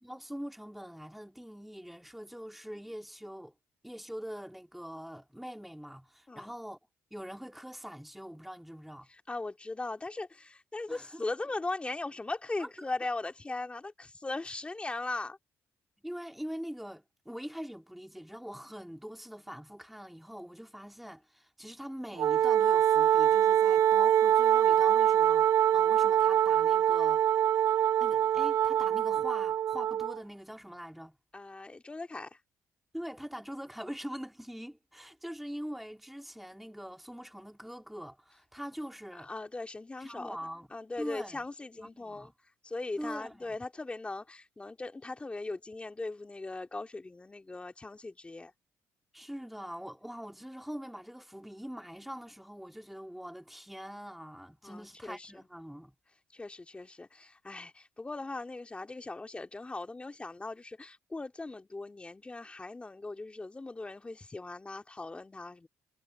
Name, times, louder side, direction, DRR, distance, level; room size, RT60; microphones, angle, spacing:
voice 1, 0.0-3.5 3.8-6.8 7.1-9.1 10.9-11.2 12.6-12.7 16.0-25.5 25.7-27.5 28.0-31.2 32.9-39.3 40.0-40.7 41.0-41.5 41.8-42.3 43.0-43.6 49.1-56.0, equal, ahead, 3.0 m, -43 dB
voice 2, 9.1-15.4 31.3-32.4 39.2-40.4 40.7-42.3 42.6-48.5 54.6-55.5 56.3-65.7, left 2 dB, 20° left, 2.8 m, -39 dB
Wind instrument woodwind instrument, 22.2-30.2, right 10 dB, 65° right, 0.5 m, -24 dB
cardioid pair, 80°, 6 cm